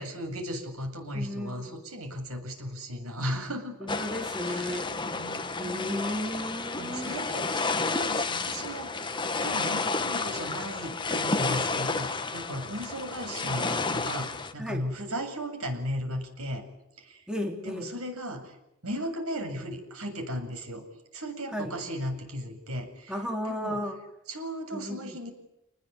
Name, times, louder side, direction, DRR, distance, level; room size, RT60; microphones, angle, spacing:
voice 1, 0.0-3.8 4.4-6.1 6.8-9.1 9.4-16.7 17.0-17.2 17.7-18.6 18.8-20.8 21.1-23.1 23.4-23.8 24.3-25.3, equal, 80° right, 6 dB, 7.8 m, -36 dB
voice 2, 1.1-1.8 3.8-4.9 5.5-7.1 14.6-14.9 17.3-17.9 21.5-21.8 23.1-23.9 24.7-25.2, equal, 5° right, 3 dB, 3.4 m, -34 dB
sound 1, 3.9-14.5, left 3 dB, 20° left, 1.6 m, -31 dB
29.5 x 20.5 x 9.8 m, 0.87 s
head